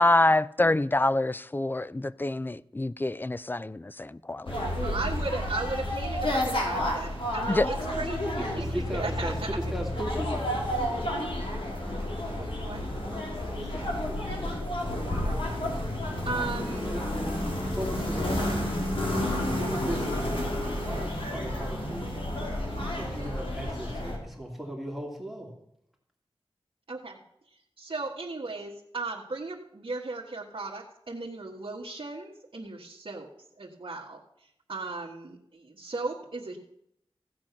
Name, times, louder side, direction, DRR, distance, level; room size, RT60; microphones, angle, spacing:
voice 1, 0.0-4.5 7.5-7.7, left 2 dB, 20° left, 0.4 m, -26 dB
sound 1, 4.5-24.2, left 1 dB, 60° left, 3.1 m, -30 dB
voice 2, 4.8-9.6 10.5-10.6 12.3-12.9 15.2-15.6 15.9-16.9 26.9-27.2 27.5-33.3 33.6-36.6, right 3 dB, 60° right, 1.5 m, -37 dB
voice 3, 7.8-10.5 13.6-14.3 16.3-18.6 19.0-20.3 20.6-22.2 22.9-25.5, right 1 dB, ahead, 2.5 m, -38 dB
15.5 x 7.6 x 5.9 m
wide cardioid pair, 65°, 10 cm